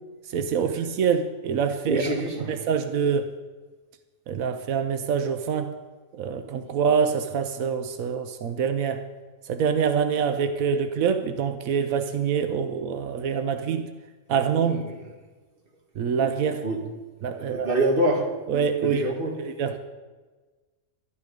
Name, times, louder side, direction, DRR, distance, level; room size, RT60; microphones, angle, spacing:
voice 1, 0.3-2.1 2.5-3.3 4.3-5.7 6.1-9.0 9.5-13.9 14.3-14.9 16.0-16.6 17.2-17.7 18.5-19.0 19.4-19.8, right 6 dB, 90° right, 8 dB, 1.2 m, -25 dB
voice 2, 1.8-2.6 14.7-15.0 16.1-16.2 16.6-16.9 17.4-18.3 18.8-19.4, right 1 dB, 40° right, 1 dB, 1.9 m, -26 dB
12.0 x 11.0 x 5.2 m, 1.3 s
omnidirectional pair, 1.4 m